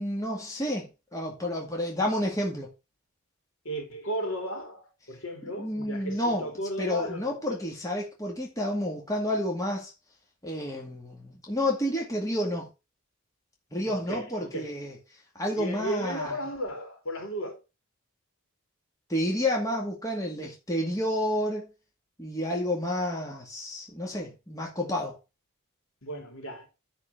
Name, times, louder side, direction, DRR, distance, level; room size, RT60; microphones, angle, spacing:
voice 1, 0.0-2.7 5.6-6.5 6.8-9.9 10.4-12.7 13.7-15.0 15.4-16.4 19.1-21.7 22.2-25.2, left 1 dB, 15° left, 2.2 m, -30 dB
voice 2, 3.6-7.6 13.9-14.2 14.5-14.7 15.6-17.6 26.0-26.7, equal, 65° left, 3.2 m, -35 dB
9.9 x 4.5 x 5.7 m
head